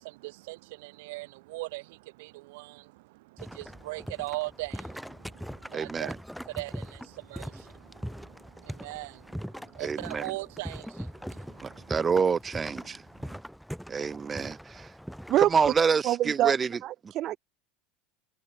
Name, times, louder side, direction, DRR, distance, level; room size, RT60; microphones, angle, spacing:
voice 1, 0.0-6.2 6.4-11.9 13.2-13.4, right 22 dB, 75° right, 5.4 m, -40 dB
sound 1, 3.4-15.8, equal, ahead, 3.4 m, -41 dB
voice 2, 5.7-6.2 9.8-10.2 11.6-13.0 13.9-14.9 15.4-16.7 17.0-17.1, right 5 dB, 25° right, 2.2 m, -27 dB
voice 3, 16.0-16.5 16.8-17.4, right 14 dB, 50° right, 0.7 m, -25 dB
hypercardioid pair, 100°, 0 cm